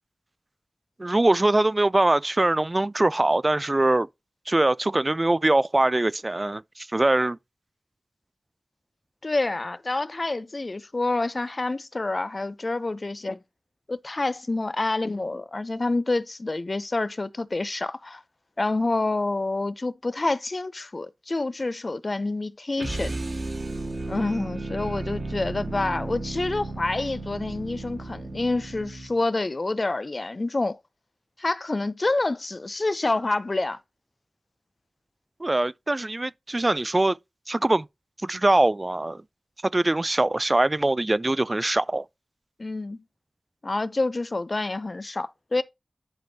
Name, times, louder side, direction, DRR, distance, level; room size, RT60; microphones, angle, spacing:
voice 1, 1.0-4.1 4.5-7.4 35.4-37.2 37.5-37.9 38.2-39.2 39.7-42.1, right 2 dB, 35° right, 0.3 m, -22 dB
voice 2, 9.2-13.4 13.9-18.2 18.6-23.2 24.1-30.8 31.4-33.8 42.6-43.0 43.6-45.6, left 2 dB, 50° left, 0.6 m, -27 dB
sound 1, 22.8-29.2, right 2 dB, 70° right, 1.8 m, -34 dB
10.5 x 5.3 x 2.8 m
cardioid pair, 40°, 0 cm